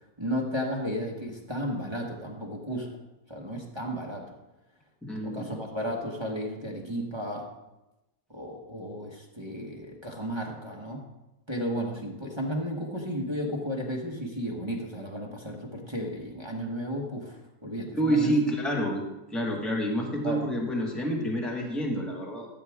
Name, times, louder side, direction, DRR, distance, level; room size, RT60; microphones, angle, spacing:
voice 1, 0.2-2.9 3.3-4.2 5.2-7.4 8.3-11.0 11.5-18.3 20.2-20.4, equal, 20° right, -1 dB, 1.1 m, -33 dB
voice 2, 5.0-5.5 17.9-19.0 19.3-22.5, right 1 dB, ahead, -1 dB, 1.4 m, -28 dB
13.5 x 7.5 x 3.6 m, 1.0 s
omnidirectional pair, 1.9 m